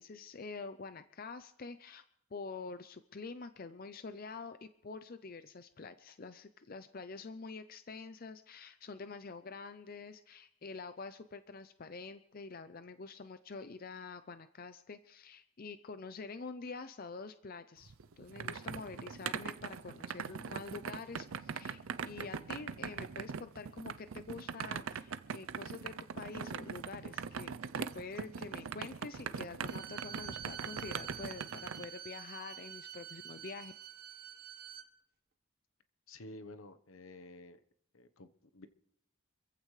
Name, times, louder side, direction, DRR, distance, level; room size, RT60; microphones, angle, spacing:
voice 1, 0.0-2.0 2.3-33.7, left 4 dB, 45° left, 11 dB, 0.5 m, -47 dB
sound 1, 17.8-31.8, right 6 dB, 75° right, 0.5 m, -41 dB
Bowed string instrument, 29.7-34.9, right 9 dB, 45° right, 1.3 m, -48 dB
voice 2, 36.1-37.6 37.9-38.7, left 2 dB, 75° left, 11 dB, 1.0 m, -51 dB
26.0 x 15.0 x 3.2 m, 0.75 s
head